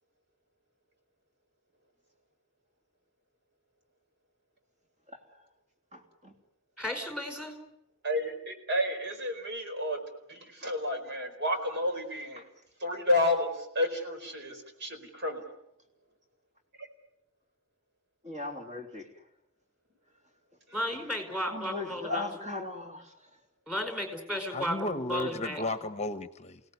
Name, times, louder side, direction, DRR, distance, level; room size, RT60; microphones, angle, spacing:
voice 1, 5.9-6.3 18.2-19.0 21.5-23.0, left 2 dB, 35° right, 3.4 m, -37 dB
voice 2, 6.8-7.6 20.7-22.5 23.7-25.6, equal, 5° right, 4.9 m, -34 dB
voice 3, 8.0-10.0 10.3-12.4 12.8-15.4 16.8-16.9, left 1 dB, 50° right, 4.8 m, -31 dB
voice 4, 24.5-26.6, left 2 dB, 30° left, 1.1 m, -34 dB
29.0 x 18.0 x 9.7 m
head